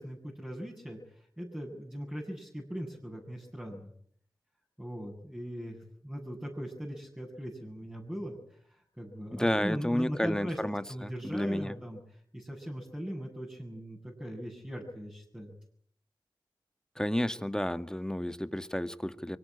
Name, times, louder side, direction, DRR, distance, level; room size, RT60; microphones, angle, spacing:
voice 1, 0.0-3.9 4.8-10.6 10.9-15.5, equal, 10° right, 7.7 m, -40 dB
voice 2, 9.3-11.8 17.0-19.4, left 1 dB, 10° left, 1.8 m, -31 dB
24.0 x 18.5 x 10.0 m
cardioid pair, 40°, 9 cm